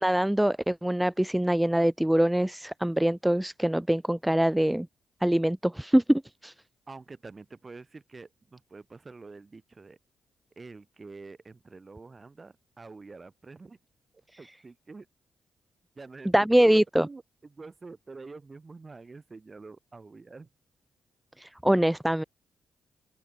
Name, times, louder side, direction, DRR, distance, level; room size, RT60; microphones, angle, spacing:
voice 1, 0.0-4.9 5.2-6.5 16.3-17.1 21.4-22.2, right 1 dB, 5° right, 0.5 m, -24 dB
voice 2, 6.9-10.0 10.5-13.8 14.4-15.1 15.9-20.5, right 3 dB, 35° right, 6.8 m, -46 dB
open air
hypercardioid pair, 40°, 0 cm